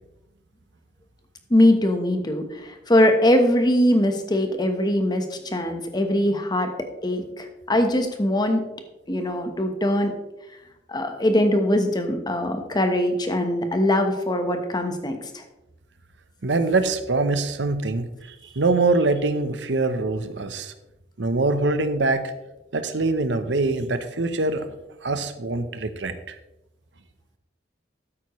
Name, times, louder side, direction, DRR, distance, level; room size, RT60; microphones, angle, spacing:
voice 1, 1.5-6.7 7.0-8.6 9.1-10.1 10.9-15.4, left 1 dB, 25° left, 6 dB, 1.2 m, -21 dB
voice 2, 16.4-20.7 21.2-22.2 22.7-24.8 25.0-26.4, right 3 dB, 80° right, 10 dB, 0.9 m, -24 dB
13.0 x 8.8 x 3.2 m, 0.96 s
head